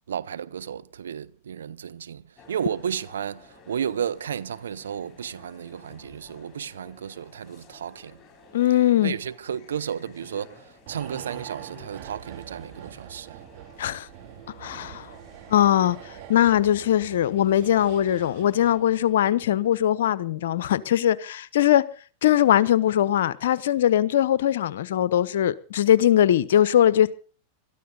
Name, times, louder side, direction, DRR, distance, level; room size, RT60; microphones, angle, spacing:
voice 1, 0.1-8.2 9.0-13.4, right 8 dB, 80° right, 0.7 m, -33 dB
sound 1, 2.4-18.8, left 4 dB, 25° left, 5.6 m, -53 dB
voice 2, 8.5-9.2 13.8-14.1 14.6-15.1 15.5-21.8 22.2-27.1, left 11 dB, 70° left, 0.9 m, -21 dB
sound 2, 10.9-19.4 19.7-19.8, right 11 dB, 60° right, 2.7 m, -44 dB
21.5 x 13.5 x 3.9 m
hypercardioid pair, 100°, 0 cm